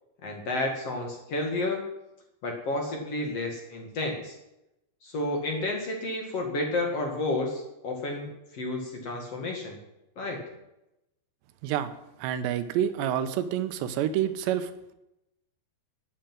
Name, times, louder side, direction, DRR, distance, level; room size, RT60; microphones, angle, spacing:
voice 1, 0.2-1.8 2.4-4.4 5.0-9.8 10.2-10.4, left 2 dB, 45° left, 1 dB, 2.4 m, -31 dB
voice 2, 12.2-15.0, right 10 dB, 90° right, 10 dB, 3.1 m, -28 dB
12.0 x 9.1 x 8.9 m, 0.91 s
omnidirectional pair, 4.8 m